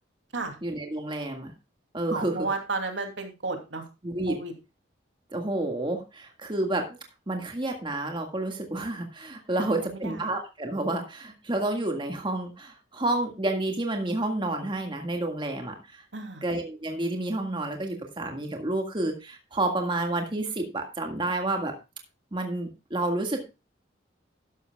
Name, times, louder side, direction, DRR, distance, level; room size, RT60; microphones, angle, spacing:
voice 1, 0.6-1.5 1.9-2.4 4.0-4.4 5.3-7.0 7.3-16.0 16.4-21.7 22.3-23.5, right 2 dB, 25° right, 3 dB, 1.8 m, -30 dB
voice 2, 2.1-3.9 4.3-4.5 9.6-10.3 16.1-16.4, right 3 dB, 80° right, 4 dB, 2.7 m, -33 dB
13.0 x 11.0 x 2.3 m, 0.27 s
head